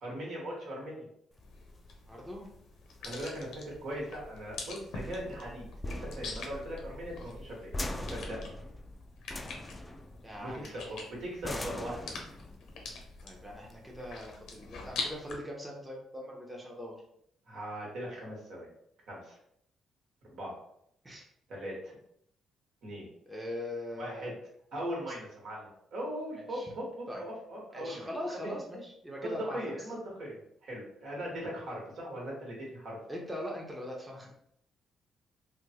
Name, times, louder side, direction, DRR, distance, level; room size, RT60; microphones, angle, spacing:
voice 1, 0.0-1.1 3.0-7.7 8.0-8.5 10.4-12.3 17.5-18.7 19.1-19.4 20.3-20.5 21.5-21.9 22.8-23.1 24.0-24.3 24.7-28.1 28.3-28.5 29.2-33.0, equal, 70° right, -3 dB, 1.3 m, -39 dB
sound 1, 1.3-14.4, left 1 dB, 20° left, 0.3 m, -43 dB
sound 2, 1.4-15.4, left 3 dB, 80° left, 0.7 m, -45 dB
voice 2, 2.1-2.5 10.2-11.0 13.2-17.0 21.0-21.3 23.3-24.3 26.5-26.7 27.1-27.2 27.7-29.6 33.1-34.3, left 1 dB, 10° right, -2 dB, 0.7 m, -41 dB
3.4 x 2.3 x 2.8 m, 0.71 s
cardioid pair, 90°, 0 cm